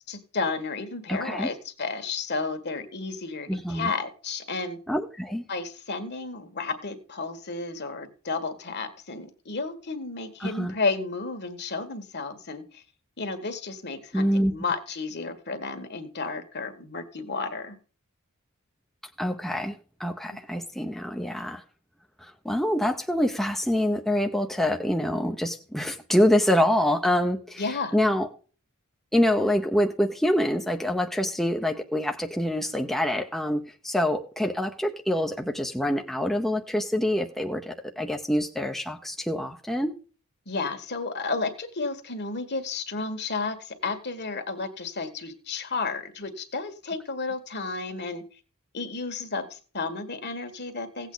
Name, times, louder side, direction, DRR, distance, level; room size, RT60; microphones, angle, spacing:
voice 1, 0.1-4.8 5.5-12.8 13.2-17.8 27.6-27.9 40.4-48.2 48.7-51.1, left 4 dB, 50° left, 8 dB, 1.7 m, -32 dB
voice 2, 1.1-1.5 3.5-3.9 4.9-5.4 10.4-10.7 14.1-14.5 19.2-21.6 22.2-28.3 29.1-39.9, left 1 dB, ahead, 3 dB, 0.7 m, -26 dB
16.5 x 8.3 x 3.9 m, 0.38 s
head